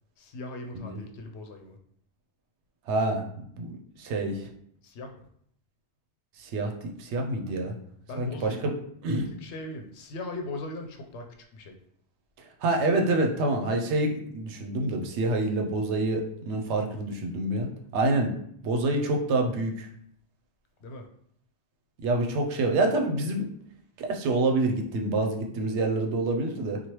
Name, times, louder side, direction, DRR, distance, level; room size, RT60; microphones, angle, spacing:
voice 1, 0.2-1.8 4.8-5.1 8.1-8.8 9.3-11.3 11.5-11.8 20.8-21.1, left 2 dB, 75° left, 4 dB, 0.8 m, -39 dB
voice 2, 2.9-4.5 6.4-7.8 8.2-8.7 9.0-9.3 12.6-18.3 18.6-19.9 22.0-23.5 24.0-26.8, right 2 dB, 80° right, 3 dB, 0.9 m, -27 dB
3.1 x 2.3 x 2.9 m, 0.66 s
omnidirectional pair, 1.1 m